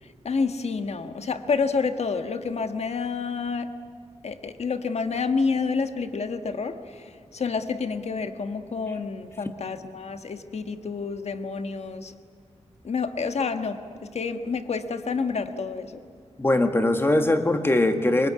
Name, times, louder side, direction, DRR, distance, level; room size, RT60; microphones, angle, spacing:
voice 1, 0.0-3.7 4.2-12.1 12.8-16.0, left 4 dB, 70° left, 8 dB, 1.4 m, -29 dB
voice 2, 16.4-18.3, left 1 dB, 20° left, 6 dB, 1.8 m, -21 dB
24.0 x 23.5 x 9.6 m, 2.3 s
wide cardioid pair, 155°, 12 cm